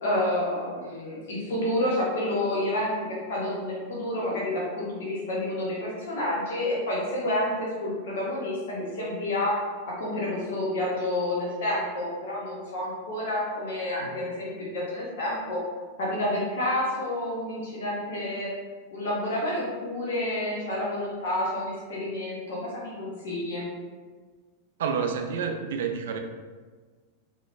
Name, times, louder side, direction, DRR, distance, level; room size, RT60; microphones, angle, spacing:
voice 1, 0.0-9.6 9.9-15.6 16.0-18.5 18.9-23.7, left 1 dB, 60° left, -4 dB, 0.9 m, -29 dB
voice 2, 24.8-26.2, right 6 dB, 60° right, 5 dB, 0.3 m, -29 dB
4.2 x 2.7 x 2.5 m, 1.5 s
figure-of-eight pair, 90°, 0 cm